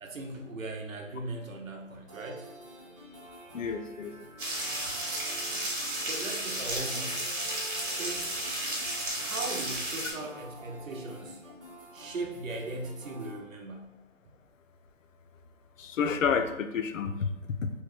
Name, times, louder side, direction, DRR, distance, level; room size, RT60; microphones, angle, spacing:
voice 1, 0.0-2.5 5.4-5.7 6.0-7.6 7.9-8.7 9.2-11.4 11.9-13.9, right 2 dB, 85° right, 2 dB, 0.8 m, -39 dB
sound 1, 2.1-13.4, right 1 dB, 25° right, 0.5 m, -49 dB
voice 2, 3.5-4.1 15.8-17.7, left 6 dB, 75° left, 8 dB, 0.5 m, -30 dB
sound 2, 4.4-10.1, right 1 dB, 40° right, 1.0 m, -33 dB
3.0 x 2.2 x 3.2 m, 0.96 s
figure-of-eight pair, 160°, 39 cm